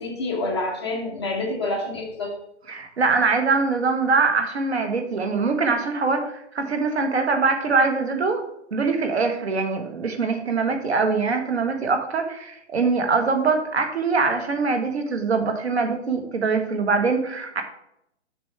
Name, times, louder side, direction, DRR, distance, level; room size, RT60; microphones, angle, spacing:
voice 1, 0.0-2.3, left 2 dB, 20° left, -1 dB, 0.9 m, -27 dB
voice 2, 2.7-8.4 8.7-17.6, right 4 dB, 65° right, 6 dB, 1.4 m, -23 dB
7.0 x 6.1 x 3.3 m, 0.80 s
hypercardioid pair, 175°, 36 cm